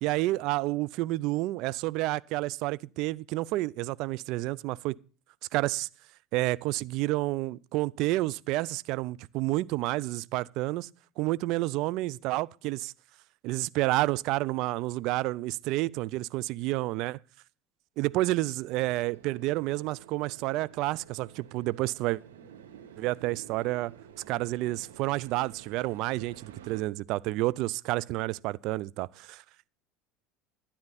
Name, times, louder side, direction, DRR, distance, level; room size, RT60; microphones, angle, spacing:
voice 1, 0.0-5.0 5.5-5.9 6.3-10.9 11.2-12.9 13.4-17.2 18.0-22.2 23.0-23.9 24.3-29.4, right 18 dB, 60° right, 0.5 m, -30 dB
sound 1, 18.7-26.8, right 8 dB, 80° right, 1.4 m, -51 dB
12.5 x 10.0 x 4.1 m
hypercardioid pair, 75°, 0 cm